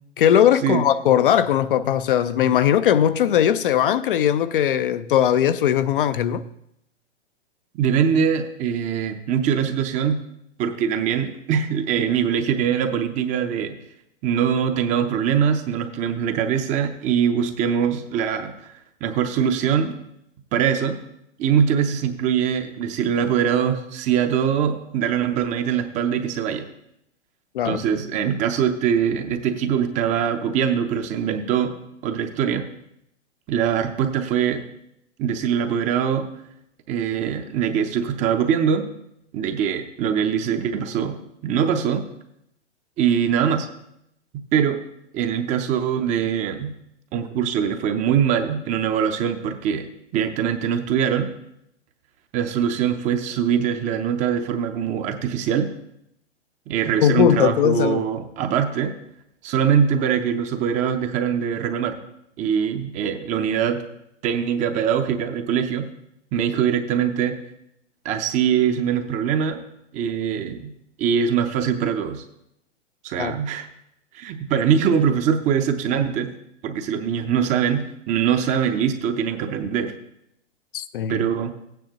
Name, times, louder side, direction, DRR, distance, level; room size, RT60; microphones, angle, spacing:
voice 1, 0.2-6.4 27.5-27.8 57.0-58.1 73.2-73.4 80.7-81.2, left 10 dB, 50° left, 0.5 m, -19 dB
voice 2, 7.8-10.2 10.6-13.7 14.2-18.7 19.0-20.0 20.5-21.0 21.4-26.7 27.6-31.8 32.0-32.6 33.5-34.6 35.2-36.3 36.9-38.9 39.3-41.2 41.4-42.1 43.0-43.7 44.5-44.8 45.1-46.7 47.1-49.9 50.1-51.3 52.3-55.7 56.7-59.0 59.4-62.0 62.4-63.8 64.2-65.9 66.3-67.4 68.0-69.6 69.9-70.7 71.0-72.2 73.0-73.7 74.1-76.3 76.6-79.9 81.1-81.5, right 8 dB, 20° right, 0.6 m, -22 dB
15.0 x 9.2 x 2.9 m
hypercardioid pair, 120°, 36 cm